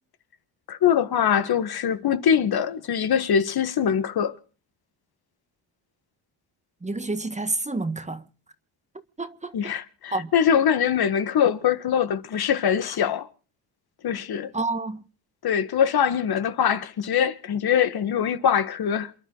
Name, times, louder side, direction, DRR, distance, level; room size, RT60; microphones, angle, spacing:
voice 1, 0.7-4.3 9.5-13.3 14.0-14.5 15.4-19.1, left 8 dB, 55° left, 1.7 m, -23 dB
voice 2, 6.8-8.2 9.2-9.5 10.1-10.3 14.5-15.0, right 2 dB, 15° right, 1.7 m, -28 dB
28.5 x 11.0 x 4.0 m
cardioid pair, 95°, 46 cm